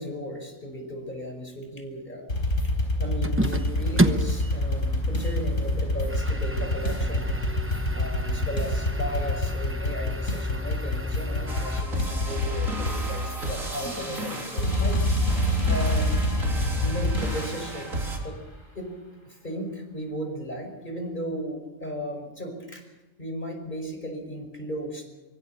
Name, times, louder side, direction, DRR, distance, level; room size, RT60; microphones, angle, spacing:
voice 1, 0.0-2.3 3.0-7.3 7.9-15.0 15.7-16.2 16.8-18.4 18.7-18.9 19.3-22.8 23.2-25.0, equal, 35° left, 4 dB, 5.5 m, -35 dB
sound 1, 2.3-17.9, left 1 dB, 75° left, 4.5 m, -27 dB
sound 2, 3.2-11.8, right 1 dB, 10° right, 0.8 m, -32 dB
sound 3, 11.5-18.2, right 1 dB, 85° right, 4.3 m, -33 dB
25.5 x 23.5 x 5.9 m, 1.1 s
omnidirectional pair, 1.4 m